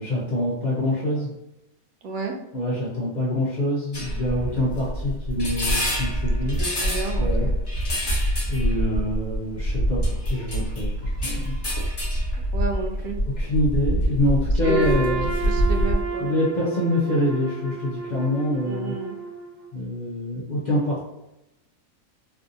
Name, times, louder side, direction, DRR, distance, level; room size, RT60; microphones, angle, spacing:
voice 1, 0.0-1.3 2.5-6.6 7.2-7.5 8.4-11.8 13.4-15.3 16.2-18.9 19.7-21.0, left 1 dB, 60° left, -6 dB, 0.4 m, -25 dB
voice 2, 2.0-2.4 6.6-7.5 12.5-13.2 14.6-16.3 18.6-19.2, right 2 dB, 80° right, 2 dB, 1.0 m, -30 dB
sound 1, 3.9-16.0, equal, 25° left, 0.6 m, -25 dB
Trumpet, 14.6-19.7, right 5 dB, 30° right, 1.3 m, -32 dB
3.4 x 2.5 x 2.6 m, 0.91 s
omnidirectional pair, 1.5 m